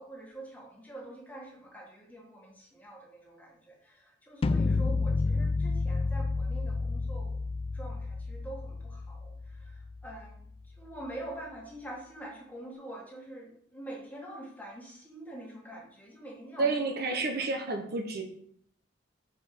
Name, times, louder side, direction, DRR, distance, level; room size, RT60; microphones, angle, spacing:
voice 1, 0.0-7.4 7.7-17.5, right 1 dB, 10° left, -3 dB, 1.8 m, -45 dB
sound 1, 4.4-10.4, left 3 dB, 30° left, 0.3 m, -31 dB
voice 2, 16.6-18.2, right 3 dB, 55° right, 4 dB, 0.9 m, -30 dB
5.3 x 5.0 x 6.0 m, 0.66 s
head